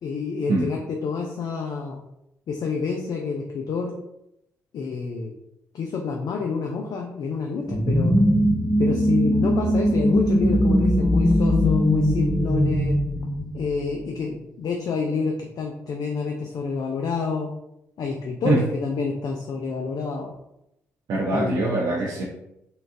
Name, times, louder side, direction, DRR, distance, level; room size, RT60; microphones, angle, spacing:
voice 1, 0.0-2.0 2.5-3.9 4.7-5.3 5.7-8.2 8.8-12.9 13.5-17.5 18.0-20.3 21.3-21.7, left 5 dB, 55° left, 1 dB, 0.5 m, -28 dB
sound 1, 7.7-14.1, equal, ahead, 0.5 m, -20 dB
voice 2, 21.1-22.2, right 2 dB, 60° right, -4 dB, 0.6 m, -23 dB
3.7 x 2.3 x 2.6 m, 0.83 s
hypercardioid pair, 45°, 7 cm